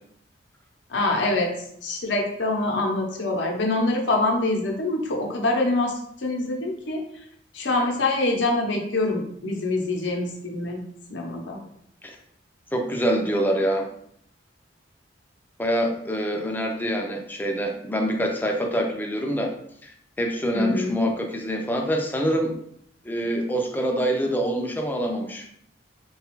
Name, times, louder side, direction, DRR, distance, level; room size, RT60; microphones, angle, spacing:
voice 1, 0.9-1.5 1.8-7.0 7.5-10.8 11.1-11.6 20.5-20.9, left 2 dB, 65° left, 1 dB, 0.7 m, -25 dB
voice 2, 12.7-13.9 15.6-19.5 19.8-19.9 20.2-22.6 23.0-25.5, equal, 10° left, 2 dB, 0.4 m, -25 dB
3.9 x 2.3 x 3.0 m, 0.69 s
head